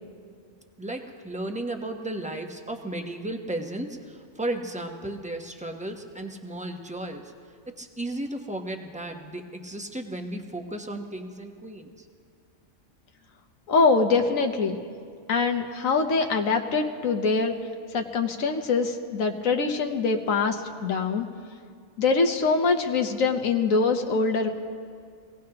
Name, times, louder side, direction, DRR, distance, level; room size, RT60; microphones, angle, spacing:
voice 1, 0.8-7.3 7.7-12.1, right 1 dB, 5° right, 4 dB, 0.8 m, -34 dB
voice 2, 13.7-14.8 15.3-17.5 17.9-21.3 22.0-24.5, left 4 dB, 80° left, 5 dB, 1.3 m, -24 dB
24.5 x 17.5 x 2.9 m, 2.2 s
omnidirectional pair, 1.4 m